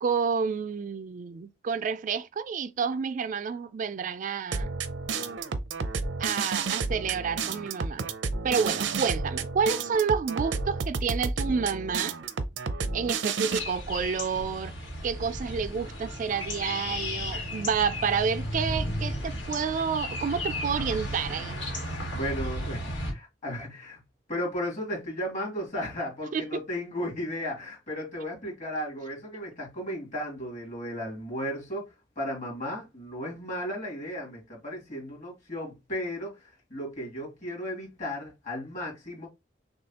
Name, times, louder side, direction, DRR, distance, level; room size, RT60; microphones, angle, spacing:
voice 1, 0.0-4.7 6.2-8.1 8.4-12.2 12.9-14.7 15.0-21.5 26.3-26.4, right 6 dB, 45° right, 0.3 m, -29 dB
sound 1, 4.5-13.6, right 4 dB, 85° right, 0.6 m, -31 dB
sound 2, 13.5-23.1, left 1 dB, 80° left, 1.8 m, -34 dB
voice 2, 22.1-24.0 24.3-39.3, equal, 45° left, 2.5 m, -35 dB
6.3 x 2.3 x 2.8 m
head